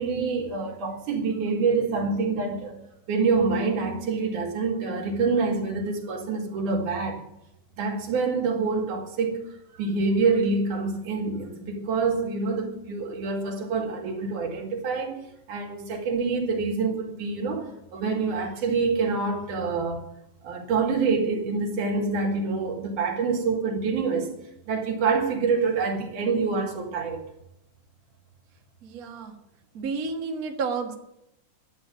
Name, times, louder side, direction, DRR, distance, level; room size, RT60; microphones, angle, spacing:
voice 1, 0.0-2.8 3.1-7.2 7.8-9.4 9.7-20.0 20.4-24.3 24.7-27.2, right 4 dB, 70° right, 3.7 m, -26 dB
voice 2, 28.8-29.3 29.7-30.9, right 4 dB, 40° right, 1.4 m, -31 dB
12.0 x 8.7 x 9.4 m
omnidirectional pair, 3.8 m